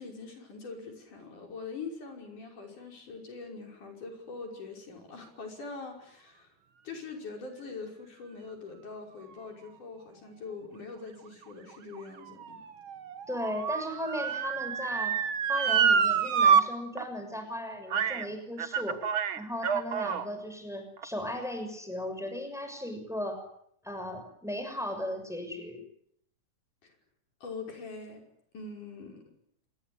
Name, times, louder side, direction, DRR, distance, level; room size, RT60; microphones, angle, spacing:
voice 1, 0.0-6.6 6.8-12.6 26.8-27.0 27.4-28.2 28.5-29.3, left 4 dB, 85° left, 3 dB, 7.1 m, -43 dB
Motor vehicle (road) / Siren, 11.4-16.6 17.0-17.1 17.9-18.3 18.6-20.3 21.0-21.1, right 7 dB, 50° right, 1.9 m, -27 dB
voice 2, 13.3-15.2 15.5-19.0 19.4-23.4 23.8-25.8, left 1 dB, ahead, 6 dB, 6.3 m, -36 dB
26.5 x 21.5 x 10.0 m, 0.70 s
omnidirectional pair, 3.5 m